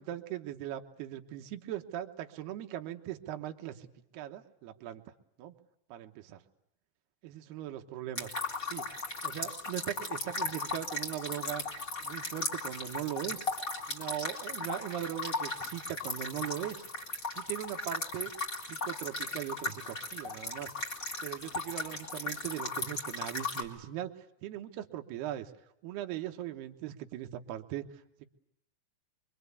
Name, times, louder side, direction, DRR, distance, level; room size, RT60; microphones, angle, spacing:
voice 1, 0.0-3.9 4.1-5.0 5.4-5.5 5.9-6.4 7.2-8.3 8.6-8.8 9.2-11.6 12.0-13.5 13.9-16.8 17.3-18.3 18.7-20.7 21.2-25.5 25.8-28.3, right 12 dB, 70° right, 5 dB, 2.9 m, -39 dB
sound 1, 8.1-23.6, left 3 dB, 25° left, 2.3 m, -37 dB
24.5 x 24.0 x 8.3 m, 0.79 s
omnidirectional pair, 5.5 m